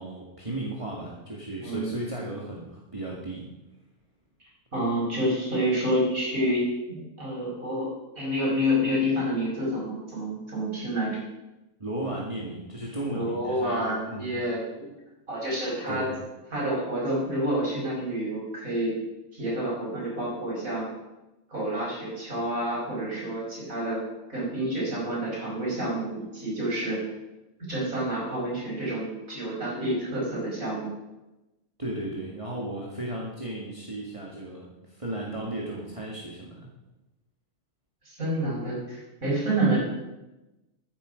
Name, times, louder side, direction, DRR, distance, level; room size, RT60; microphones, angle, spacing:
voice 1, 0.0-3.5 11.8-14.3 15.9-16.1 31.8-36.7, right 1 dB, 25° right, -4 dB, 2.1 m, -35 dB
voice 2, 4.7-7.9 8.2-11.2 13.1-14.9 15.3-16.1 16.5-18.9 19.3-20.9 21.5-24.0 24.3-27.0 27.7-30.9 38.1-39.8, equal, 80° right, -4 dB, 5.8 m, -28 dB
15.0 x 9.6 x 5.2 m, 1.0 s
omnidirectional pair, 1.4 m